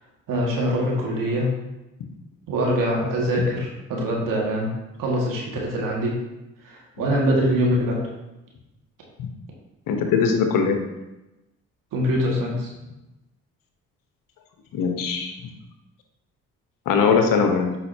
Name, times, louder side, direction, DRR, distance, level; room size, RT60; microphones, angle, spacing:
voice 1, 0.3-1.5 2.5-4.7 5.0-6.2 6.6-8.0 11.9-12.7, equal, 65° right, -3 dB, 2.1 m, -23 dB
voice 2, 9.9-10.8 14.7-15.5 16.9-17.8, left 5 dB, 65° left, 4 dB, 1.1 m, -21 dB
8.2 x 5.6 x 2.9 m, 0.98 s
hypercardioid pair, 50°, 36 cm